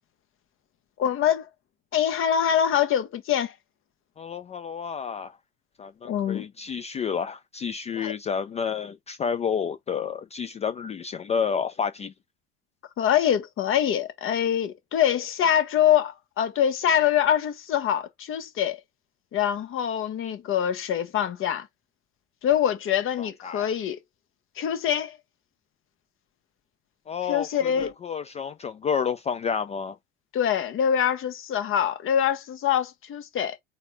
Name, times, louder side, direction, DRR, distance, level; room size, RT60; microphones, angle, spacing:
voice 1, 1.0-1.5 1.9-3.5 6.0-6.5 8.0-8.1 13.0-18.8 19.3-21.7 22.4-24.0 24.6-25.2 27.2-27.9 30.3-33.6, left 9 dB, 40° left, 1.1 m, -24 dB
voice 2, 4.2-5.3 5.8-12.1 23.2-23.7 27.1-27.5 27.8-30.0, left 6 dB, 20° left, 0.4 m, -30 dB
4.2 x 2.4 x 4.6 m
hypercardioid pair, 75°, 31 cm